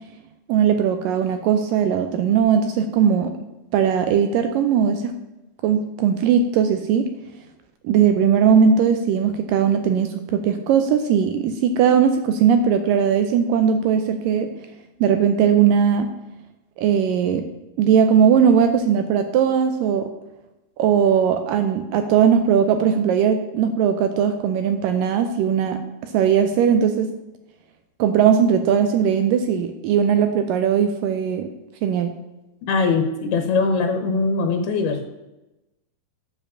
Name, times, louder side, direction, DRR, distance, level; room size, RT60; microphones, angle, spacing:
voice 1, 0.5-3.4 3.7-5.1 5.6-7.1 7.8-14.5 15.0-16.1 16.8-17.5 17.8-20.1 20.8-27.1 28.0-31.5 31.8-32.2, right 7 dB, 80° right, 7 dB, 2.0 m, -19 dB
voice 2, 32.6-35.1, left 4 dB, 80° left, 5 dB, 2.9 m, -21 dB
10.0 x 4.9 x 7.2 m, 0.99 s
omnidirectional pair, 4.5 m